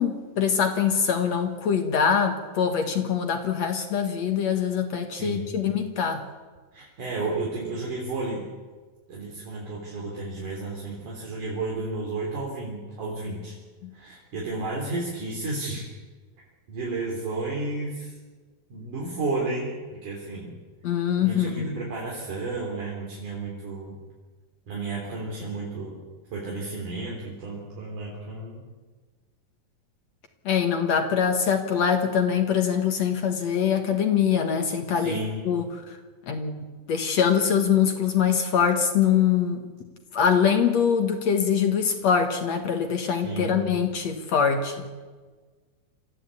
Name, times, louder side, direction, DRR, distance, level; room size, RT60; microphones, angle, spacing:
voice 1, 0.0-6.2 13.8-13.9 20.8-21.8 30.5-36.0 36.3-39.6 40.1-44.9, left 7 dB, 55° left, 6 dB, 2.4 m, -24 dB
voice 2, 5.1-5.5 6.7-8.4 9.1-13.5 13.9-15.8 16.7-18.2 18.7-20.5 21.2-24.0 24.7-26.0 26.3-28.6 34.9-35.4 43.2-43.6, right 3 dB, 60° right, -3 dB, 5.0 m, -32 dB
27.5 x 15.0 x 8.5 m, 1.4 s
omnidirectional pair, 4.1 m